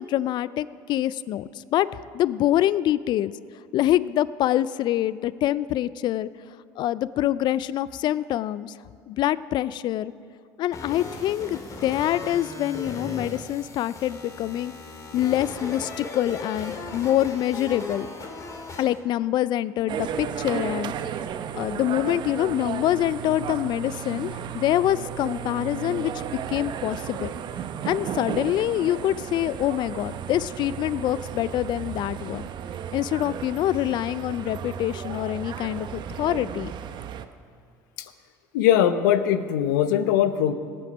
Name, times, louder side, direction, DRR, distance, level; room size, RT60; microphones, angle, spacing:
voice 1, 0.0-1.9 2.1-3.3 3.7-6.3 6.8-8.7 9.1-10.1 10.6-14.7 15.1-18.1 18.8-20.9 21.5-26.2 26.5-27.3 27.8-32.5 32.9-36.7, left 13 dB, 50° left, 18 dB, 0.4 m, -25 dB
sound 1, 10.7-19.0, left 3 dB, 35° left, 2.0 m, -37 dB
sound 2, 19.9-37.3, right 8 dB, 50° right, 0.7 m, -34 dB
voice 2, 38.5-40.5, left 10 dB, 85° left, 12 dB, 0.7 m, -21 dB
18.5 x 7.7 x 5.3 m, 2.4 s
supercardioid pair, 85°, 10 cm